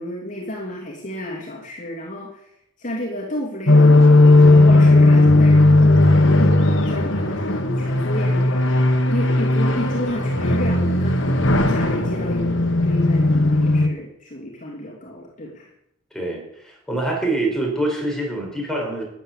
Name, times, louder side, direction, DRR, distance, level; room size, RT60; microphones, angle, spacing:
voice 1, 0.0-2.5 2.8-8.8 9.1-12.5 12.8-15.7, left 1 dB, 40° left, -3 dB, 2.9 m, -31 dB
sound 1, 3.7-13.9, left 2 dB, 70° left, 1.5 m, -16 dB
voice 2, 16.1-19.0, right 2 dB, 5° left, -1 dB, 4.8 m, -25 dB
13.5 x 10.0 x 7.5 m, 0.78 s
head